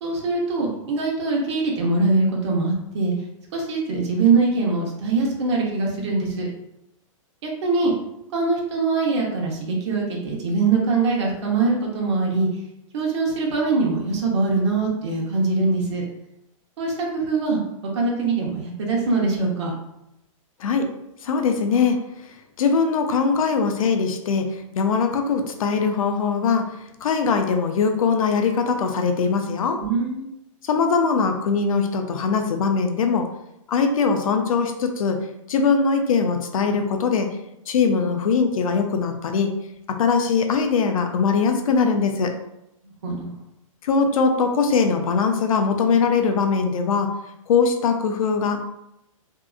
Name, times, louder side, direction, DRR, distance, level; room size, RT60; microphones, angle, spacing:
voice 1, 0.0-3.1 3.5-6.5 7.4-7.9 8.3-12.5 12.9-16.0 16.8-17.6 17.9-19.7 29.8-30.3 43.0-43.3, right 3 dB, 55° right, -1 dB, 0.8 m, -22 dB
voice 2, 20.6-20.9 21.2-22.0 22.6-29.8 30.6-33.3 33.7-35.2 35.5-37.3 37.7-39.5 39.9-42.3 43.8-47.1 47.5-48.6, left 5 dB, 80° left, 5 dB, 0.5 m, -21 dB
2.7 x 2.4 x 2.3 m, 0.84 s
hypercardioid pair, 160°, 18 cm